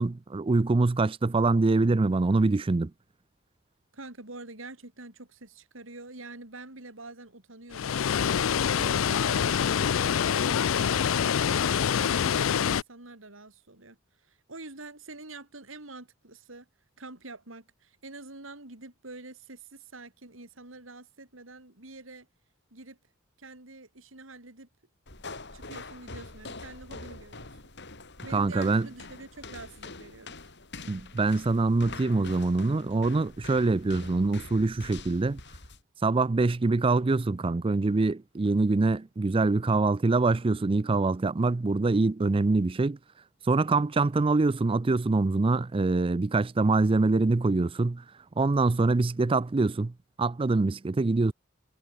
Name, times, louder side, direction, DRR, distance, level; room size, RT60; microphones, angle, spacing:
voice 1, 0.0-2.9 28.3-28.9 30.9-35.4 36.0-43.0 43.5-48.0 48.4-49.9 50.2-51.3, right 3 dB, 25° right, 0.4 m, -24 dB
voice 2, 3.9-8.0 8.6-14.0 14.2-16.7 17.0-22.3 22.7-23.0 23.4-24.7 25.5-27.6 28.2-30.5, right 2 dB, 75° right, 4.2 m, -46 dB
Water, 7.7-12.8, left 8 dB, 85° left, 0.5 m, -25 dB
sound 1, 25.1-35.8, left 3 dB, 60° left, 7.1 m, -44 dB
head